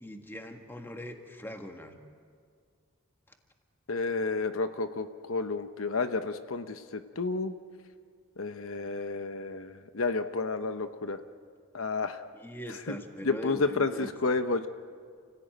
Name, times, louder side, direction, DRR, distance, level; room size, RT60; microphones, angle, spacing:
voice 1, 0.0-2.0 12.3-14.1, equal, 10° left, 4 dB, 1.7 m, -41 dB
voice 2, 3.9-7.5 8.4-11.2 11.7-12.2 12.9-13.0 13.2-14.7, left 3 dB, 70° left, 9 dB, 0.9 m, -31 dB
29.0 x 16.5 x 9.0 m, 2.1 s
head